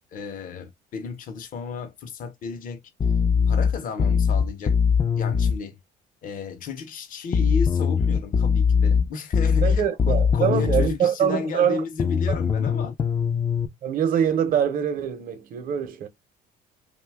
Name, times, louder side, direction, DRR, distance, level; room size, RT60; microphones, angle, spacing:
voice 1, 0.1-2.8 3.5-4.8 5.2-5.8 6.2-12.9, left 5 dB, 55° left, 0.7 m, -33 dB
sound 1, 3.0-5.6 7.3-10.9 12.0-13.7, left 6 dB, 25° left, 0.4 m, -21 dB
voice 2, 9.6-11.8 12.3-12.4 13.8-16.1, right 8 dB, 55° right, 0.7 m, -24 dB
2.6 x 2.2 x 3.3 m
cardioid pair, 110°, 17 cm